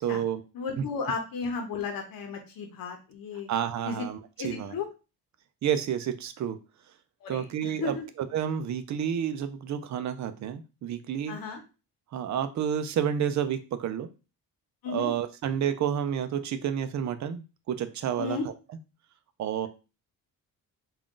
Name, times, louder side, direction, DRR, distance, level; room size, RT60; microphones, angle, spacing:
voice 1, 0.0-0.4 3.5-4.7 5.6-6.6 7.3-8.0 8.3-11.4 12.1-14.1 14.9-18.5 19.4-19.7, right 9 dB, 55° right, 10 dB, 0.5 m, -30 dB
voice 2, 0.5-3.5 3.8-4.1 4.4-4.9 7.2-8.1 11.3-11.6 14.8-15.1 18.2-18.5, left 4 dB, 70° left, 3 dB, 0.9 m, -34 dB
3.6 x 2.5 x 3.7 m, 0.31 s
cardioid pair, 140°, 36 cm